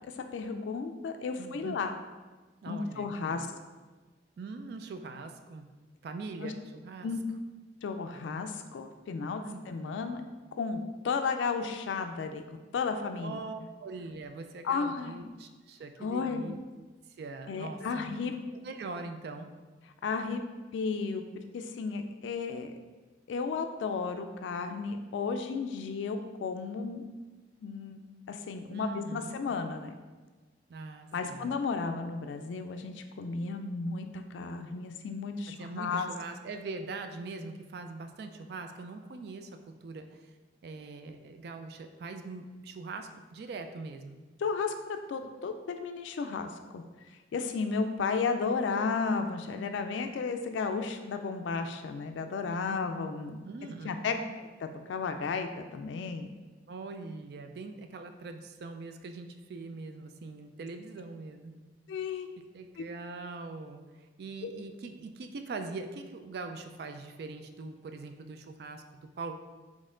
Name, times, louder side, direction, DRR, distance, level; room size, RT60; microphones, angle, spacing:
voice 1, 0.0-2.0 2.7-3.5 6.4-6.5 7.0-7.3 7.8-10.2 10.6-10.8 11.0-12.4 12.7-13.4 14.6-15.2 16.0-16.6 17.5-18.3 20.0-20.4 20.7-21.2 21.5-22.7 23.3-27.0 27.6-28.0 28.3-29.9 31.1-36.1 44.4-44.7 45.1-46.8 47.3-53.4 53.8-56.3 61.9-62.5 62.8-62.9 64.4-64.5, left 5 dB, 90° left, 6 dB, 0.3 m, -33 dB
voice 2, 1.4-1.8 2.6-3.5 4.4-5.7 6.0-7.1 9.4-9.6 13.2-16.6 17.2-18.0 18.5-19.5 28.7-29.3 30.7-31.6 35.5-40.3 40.6-44.2 52.7-52.9 53.4-54.3 56.7-61.5 62.4-69.6, right 3 dB, 60° right, 7 dB, 0.3 m, -42 dB
4.2 x 3.1 x 3.7 m, 1.3 s
head